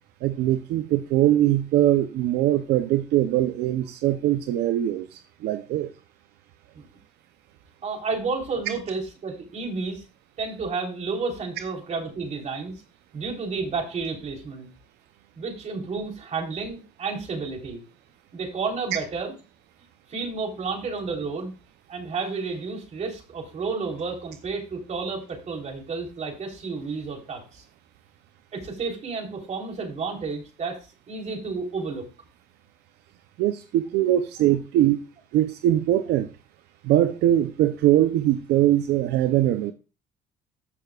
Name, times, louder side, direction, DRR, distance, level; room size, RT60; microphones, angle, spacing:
voice 1, 0.2-5.9 33.4-35.0 35.3-36.3 36.8-39.7, right 13 dB, 80° right, 0.7 m, -22 dB
voice 2, 7.8-10.0 10.4-12.7 13.1-14.7 15.4-17.8 18.3-19.3 20.1-21.5 21.9-27.6 28.5-30.8 31.1-32.0, right 4 dB, 45° right, 3.7 m, -31 dB
14.5 x 6.8 x 2.4 m
cardioid pair, 110°, 17 cm